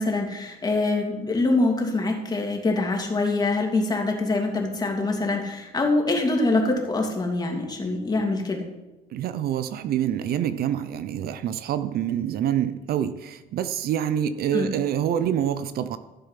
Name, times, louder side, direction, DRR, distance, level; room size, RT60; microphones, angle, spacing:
voice 1, 0.0-8.7 14.5-14.7, left 2 dB, 25° left, 1 dB, 2.7 m, -24 dB
voice 2, 9.1-16.0, right 10 dB, 65° right, 12 dB, 0.7 m, -26 dB
14.5 x 7.0 x 5.8 m, 1.1 s
cardioid pair, 110°, 17 cm